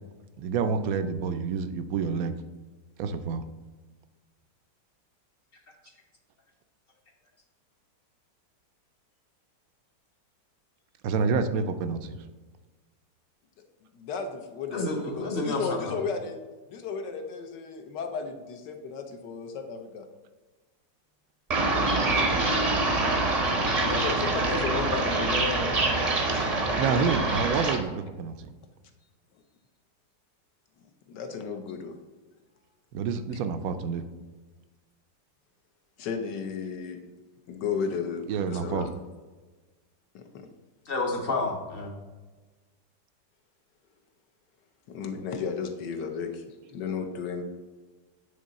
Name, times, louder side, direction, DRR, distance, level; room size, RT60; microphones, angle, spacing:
voice 1, 0.4-2.3 3.0-3.4 11.0-12.2 26.8-28.5 32.9-34.0 38.3-38.9, right 5 dB, 75° right, 9 dB, 0.8 m, -28 dB
voice 2, 13.9-16.4 16.7-20.0 23.8-25.9 31.1-31.9 36.0-37.0 37.5-38.9 40.1-40.5 44.9-46.4 46.7-47.4, left 5 dB, 75° left, 5 dB, 1.4 m, -34 dB
voice 3, 14.7-16.0 40.9-41.9, left 2 dB, 45° left, 1 dB, 0.8 m, -30 dB
sound 1, 21.5-27.8, right 2 dB, 40° right, 0.5 m, -25 dB
8.8 x 3.7 x 4.0 m, 1.3 s
omnidirectional pair, 1.9 m